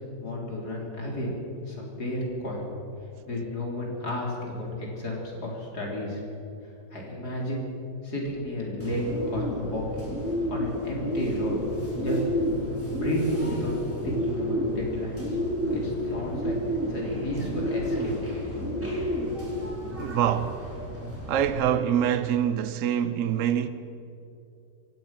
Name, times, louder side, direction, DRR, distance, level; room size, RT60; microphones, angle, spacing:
voice 1, 0.2-1.3 1.6-2.6 3.2-6.2 6.9-7.7 8.0-10.1 10.5-11.5 12.0-12.2 12.9-13.7 14.0-15.4 15.7-16.6 16.9-18.1, left 1 dB, 60° left, 4.4 m, -32 dB
Bird, 8.8-21.5, equal, 5° right, 4.6 m, -30 dB
voice 2, 20.0-20.6 21.3-23.7, right 9 dB, 55° right, 1.1 m, -25 dB
27.0 x 16.5 x 6.0 m
omnidirectional pair, 1.9 m